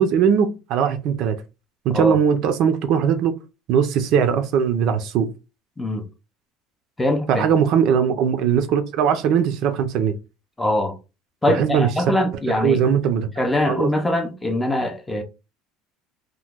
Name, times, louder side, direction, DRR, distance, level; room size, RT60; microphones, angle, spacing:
voice 1, 0.0-1.4 1.8-3.3 3.7-5.3 7.3-10.1 11.5-11.9 12.6-13.3 13.7-13.9, right 7 dB, 50° right, 0.4 m, -20 dB
voice 2, 7.0-7.5 10.6-10.9 11.4-12.8 13.4-15.2, left 1 dB, 5° left, 0.4 m, -22 dB
2.9 x 2.1 x 3.5 m
cardioid pair, 160°, 0 cm